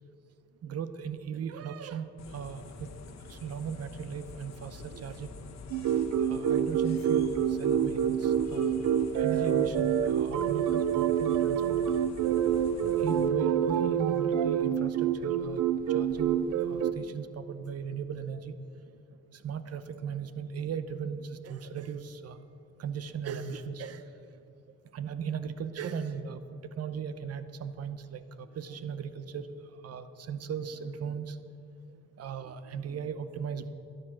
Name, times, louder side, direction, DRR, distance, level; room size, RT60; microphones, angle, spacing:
voice 1, 0.6-2.9 3.3-5.3 6.2-8.8 9.2-11.8 13.0-15.6 15.9-18.5 19.3-22.4 22.8-24.1 24.9-26.4 26.8-31.4 32.2-33.7, right 7 dB, 55° right, 12 dB, 0.9 m, -37 dB
sound 1, 2.2-13.3, left 4 dB, 60° left, 1.3 m, -47 dB
sound 2, 5.7-16.9, right 9 dB, 80° right, 0.7 m, -27 dB
12.5 x 11.5 x 6.2 m, 2.6 s
cardioid pair, 90°, 30 cm